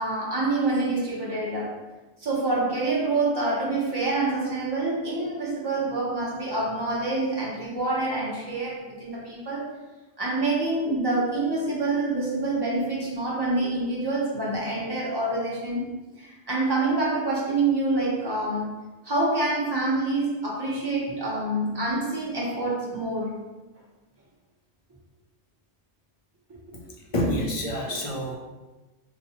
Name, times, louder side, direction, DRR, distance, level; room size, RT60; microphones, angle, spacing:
voice 1, 0.0-1.8 2.2-9.7 10.2-15.9 16.2-23.5 26.5-26.6, right 2 dB, 25° right, -5 dB, 0.7 m, -27 dB
voice 2, 26.7-28.3, equal, 45° left, -2 dB, 0.4 m, -28 dB
3.9 x 2.2 x 2.8 m, 1.1 s
omnidirectional pair, 1.1 m